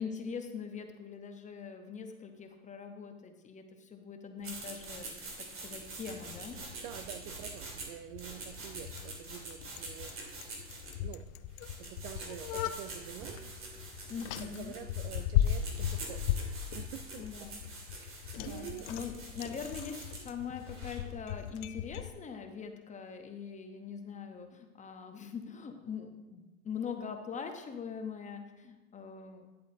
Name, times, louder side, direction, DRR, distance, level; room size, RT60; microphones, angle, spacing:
voice 1, 0.0-6.6 14.1-14.7 17.2-17.6 18.4-29.5, left 6 dB, 15° left, 6 dB, 0.8 m, -42 dB
sound 1, 4.4-21.1, right 3 dB, 30° right, 2.1 m, -46 dB
Bicycle, 5.8-22.1, left 11 dB, 55° left, 0.5 m, -38 dB
voice 2, 6.7-10.5 11.0-11.3 11.8-13.4 14.4-17.5 17.8-18.9, right 12 dB, 45° right, 11 dB, 0.4 m, -47 dB
10.5 x 8.1 x 2.6 m, 1.1 s
hypercardioid pair, 110°, 42 cm